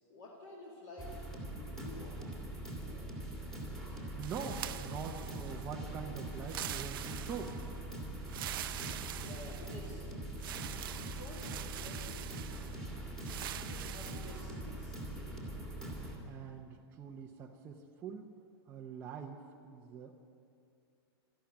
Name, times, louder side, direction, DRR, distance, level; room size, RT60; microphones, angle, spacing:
voice 1, 0.1-2.7 9.2-10.1 11.0-12.7 13.4-15.8, left 2 dB, 35° left, -3 dB, 2.0 m, -52 dB
sound 1, 1.0-16.2, right 1 dB, 5° left, 2.0 m, -43 dB
voice 2, 3.1-3.5 3.8-7.6 16.2-18.3 18.7-20.1, right 6 dB, 15° right, -1 dB, 0.6 m, -44 dB
sound 2, 4.2-5.7 6.4-7.7 8.3-9.9 10.4-12.8 13.2-14.5, right 12 dB, 55° right, 0.6 m, -44 dB
13.0 x 12.0 x 8.7 m, 2.4 s
supercardioid pair, 165°, 13 cm